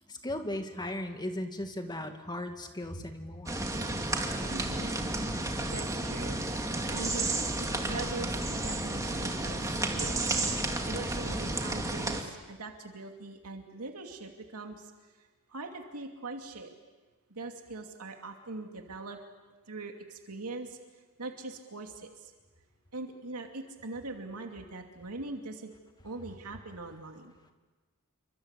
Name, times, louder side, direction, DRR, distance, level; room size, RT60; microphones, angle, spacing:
voice 1, 0.1-3.7, left 1 dB, 20° left, 5 dB, 2.2 m, -37 dB
sound 1, 3.5-12.2, right 2 dB, 15° right, 2.4 m, -32 dB
voice 2, 4.5-4.9 5.7-7.3 7.6-10.2 10.6-14.9 15.5-16.7 17.3-19.2 19.7-20.8 21.2-22.3 22.9-25.7 26.0-27.4, right 3 dB, 90° right, 3 dB, 2.5 m, -42 dB
28.5 x 24.5 x 8.2 m, 1.3 s
head